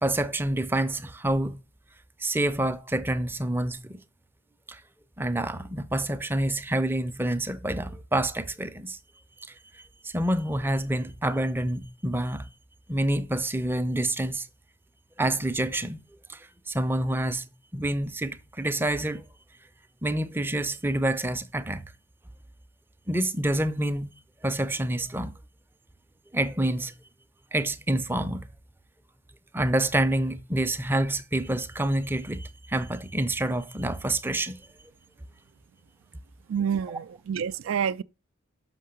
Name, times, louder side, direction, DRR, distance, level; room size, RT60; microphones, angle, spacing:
voice 1, 0.0-1.6 2.2-4.0 4.7-4.8 5.2-9.0 9.7-12.5 12.9-14.5 15.2-16.0 16.3-17.4 17.7-19.2 20.0-21.9 23.1-24.1 24.4-25.3 26.3-26.9 27.5-28.5 29.5-34.6 36.9-37.0, right 1 dB, 10° right, 0.5 m, -27 dB
voice 2, 36.5-38.0, right 7 dB, 75° right, 0.3 m, -28 dB
6.6 x 5.6 x 6.7 m
head